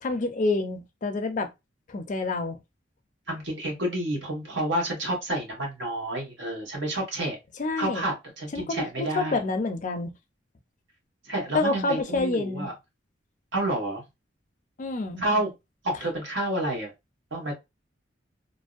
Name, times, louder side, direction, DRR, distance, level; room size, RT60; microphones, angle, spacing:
voice 1, 0.0-1.5 1.9-2.6 7.6-8.0 8.5-10.1 11.5-12.7 14.8-15.2, left 3 dB, 40° left, 0.4 m, -28 dB
voice 2, 3.3-7.4 7.8-9.4 11.2-12.7 13.5-14.0 15.2-15.5 15.8-16.9 17.3-17.5, right 1 dB, 80° right, 1.2 m, -29 dB
2.6 x 2.0 x 2.4 m
head